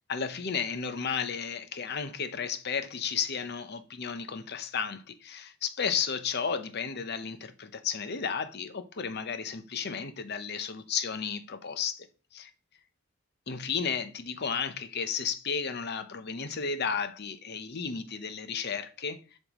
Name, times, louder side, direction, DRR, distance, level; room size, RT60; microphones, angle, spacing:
voice 1, 0.1-12.1 12.3-12.5 13.5-19.2, left 6 dB, 55° left, 0.7 m, -33 dB
7.6 x 5.3 x 3.0 m
head